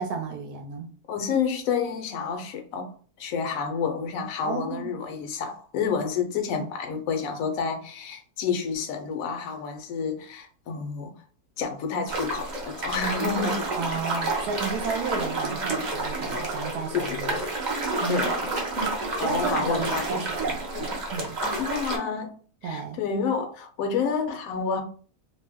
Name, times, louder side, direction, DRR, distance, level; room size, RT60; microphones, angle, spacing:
voice 1, 0.0-0.9 4.4-4.9 6.5-6.7 13.8-17.4 18.0-18.3 19.2-20.6 21.1-21.4 22.6-23.0, right 5 dB, 85° right, 1.1 m, -32 dB
voice 2, 1.1-11.1 11.6-13.7 16.9-17.5 18.1-20.2 20.7-21.0 21.4-22.4 22.6-24.8, left 6 dB, 70° left, 0.9 m, -29 dB
sound 1, 12.1-22.0, right 2 dB, 50° right, 0.5 m, -30 dB
2.7 x 2.1 x 3.4 m
omnidirectional pair, 1.6 m